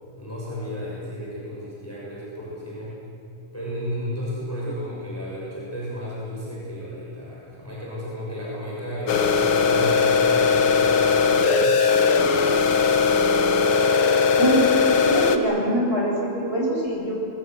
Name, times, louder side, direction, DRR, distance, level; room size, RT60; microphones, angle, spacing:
voice 1, 0.2-3.0 3.5-11.8, equal, 5° left, -6 dB, 5.8 m, -33 dB
sound 1, 9.1-15.4, left 5 dB, 60° left, 1.4 m, -19 dB
voice 2, 15.0-17.2, right 1 dB, 15° right, -4 dB, 7.6 m, -23 dB
27.0 x 22.0 x 7.7 m, 2.6 s
omnidirectional pair, 4.0 m